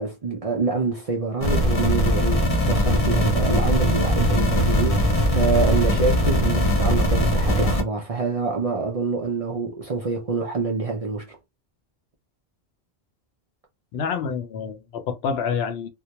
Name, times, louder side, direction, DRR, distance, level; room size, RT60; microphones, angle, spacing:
voice 1, 0.0-11.4, right 4 dB, 50° right, 0.4 m, -26 dB
sound 1, 1.4-7.8, left 1 dB, 40° left, 0.6 m, -20 dB
voice 2, 13.9-15.9, left 6 dB, 75° left, 0.8 m, -27 dB
2.2 x 2.0 x 2.8 m
omnidirectional pair, 1.1 m